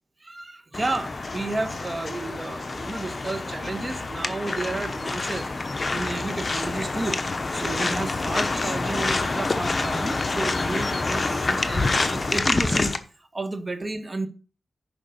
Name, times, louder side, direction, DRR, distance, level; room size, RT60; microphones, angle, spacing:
voice 1, 0.2-5.5 5.9-7.2 7.5-14.3, right 2 dB, 35° right, 8 dB, 1.5 m, -32 dB
sound 1, 0.7-13.0, left 3 dB, 40° left, 0.9 m, -27 dB
6.9 x 5.3 x 6.8 m, 0.38 s
cardioid pair, 60°, 0 cm